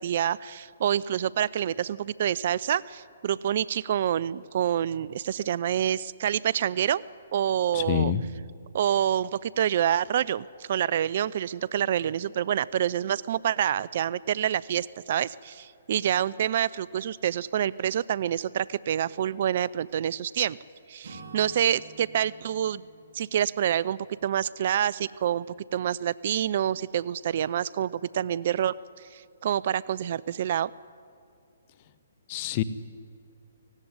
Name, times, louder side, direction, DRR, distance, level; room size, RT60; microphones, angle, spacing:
voice 1, 0.0-7.0 7.3-8.1 8.7-20.6 20.9-22.8 23.1-25.5 25.7-28.7 29.1-30.7, right 10 dB, 50° right, 21 dB, 0.4 m, -27 dB
voice 2, 7.7-8.2 32.3-32.6, left 11 dB, 40° left, 15 dB, 0.9 m, -26 dB
Acoustic guitar / Strum, 21.0-25.0, right 4 dB, 75° right, 3.2 m, -50 dB
17.0 x 17.0 x 9.6 m, 2.4 s
figure-of-eight pair, 135°, 0 cm